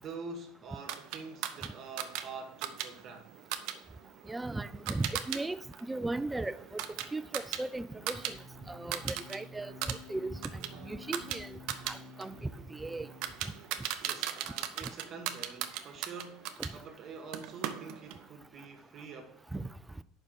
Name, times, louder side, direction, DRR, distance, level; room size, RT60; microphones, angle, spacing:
voice 1, 0.0-3.3 14.0-19.5, right 4 dB, 45° right, 1.5 m, -46 dB
sound 1, 0.9-5.4 5.7-8.3 8.6-9.4 9.7-16.7 17.3-18.2, right 11 dB, 65° right, 0.6 m, -38 dB
voice 2, 4.3-5.6 5.9-6.8 7.1-8.4 8.7-10.4 10.8-11.6 11.9-13.1 16.6-16.7 19.5-19.6, right 2 dB, 10° right, 0.4 m, -37 dB
sound 2, 8.0-13.7, left 2 dB, 75° left, 0.9 m, -51 dB
5.2 x 5.1 x 6.4 m
hypercardioid pair, 85°, 0 cm